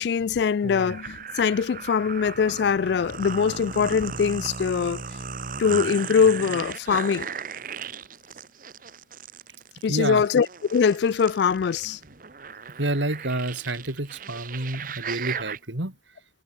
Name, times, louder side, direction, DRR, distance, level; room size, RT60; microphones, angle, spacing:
voice 1, 0.0-5.0 5.6-7.3 9.8-12.0, left 6 dB, 65° left, 0.3 m, -22 dB
sound 1, 0.6-15.6, right 6 dB, 45° right, 1.0 m, -36 dB
voice 2, 9.9-10.2 12.8-15.9, right 2 dB, 85° right, 3.1 m, -29 dB
head